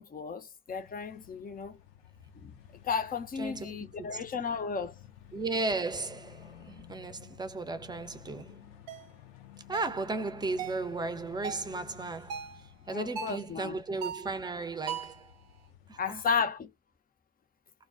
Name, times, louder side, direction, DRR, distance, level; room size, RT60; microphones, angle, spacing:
voice 1, 0.0-1.8 2.4-2.5 2.8-4.9 12.9-13.8 16.0-16.7, left 5 dB, 30° left, 0.6 m, -33 dB
sound 1, 0.7-16.4, left 10 dB, 80° left, 0.6 m, -54 dB
voice 2, 3.4-4.2 5.3-8.6 9.7-12.5 12.9-15.3 15.9-16.2, right 3 dB, 15° right, 0.7 m, -35 dB
sound 2, 8.9-9.1 9.7-10.0 10.6-10.9 11.4-11.7 12.3-12.6 13.2-13.4 14.0-14.4 14.9-15.2, right 7 dB, 75° right, 0.6 m, -38 dB
2.3 x 2.2 x 2.4 m
hypercardioid pair, 60°, 30 cm